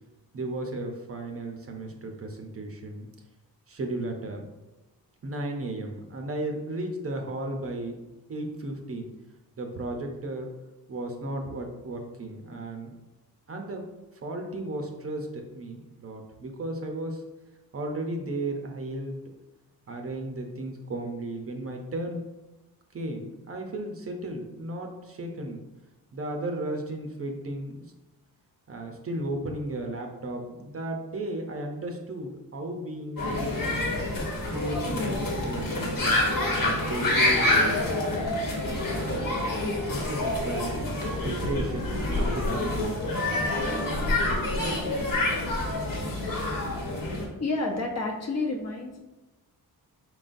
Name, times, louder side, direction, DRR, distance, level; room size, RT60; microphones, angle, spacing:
voice 1, 0.3-3.1 3.7-4.5 5.2-8.0 8.3-9.1 9.6-10.5 10.9-12.9 13.5-13.9 14.1-17.2 17.7-19.2 19.9-22.3 22.9-25.6 26.1-27.8 28.7-33.9 34.5-38.0 38.7-39.2 39.8-40.8 41.2-43.3 44.0-44.7, right 1 dB, 40° right, 3 dB, 0.6 m, -35 dB
sound 1, 33.2-47.3, left 2 dB, 65° left, 1.2 m, -27 dB
voice 2, 47.4-49.0, left 2 dB, 45° left, 1 dB, 0.8 m, -29 dB
4.7 x 3.8 x 2.6 m, 1.1 s
cardioid pair, 125°, 37 cm